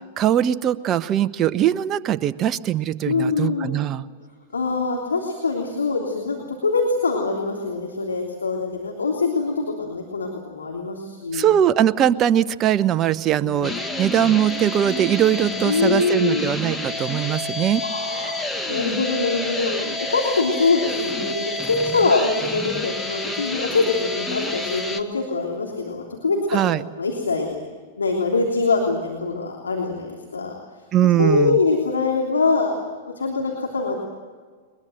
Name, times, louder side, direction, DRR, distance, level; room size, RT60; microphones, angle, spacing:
voice 1, 0.2-4.0 11.3-17.8 26.5-26.8 30.9-31.6, right 11 dB, 35° right, 12 dB, 0.9 m, -21 dB
voice 2, 3.0-3.8 4.5-11.5 13.4-13.7 15.6-16.5 17.8-18.3 18.7-19.7 20.1-26.6 27.0-27.6 28.0-30.5 31.0-32.7 33.1-34.0, left 3 dB, 90° left, 0 dB, 3.3 m, -23 dB
sound 1, 13.6-25.0, left 2 dB, 10° left, 1.9 m, -29 dB
22.0 x 22.0 x 7.9 m, 1.5 s
hypercardioid pair, 105°, 0 cm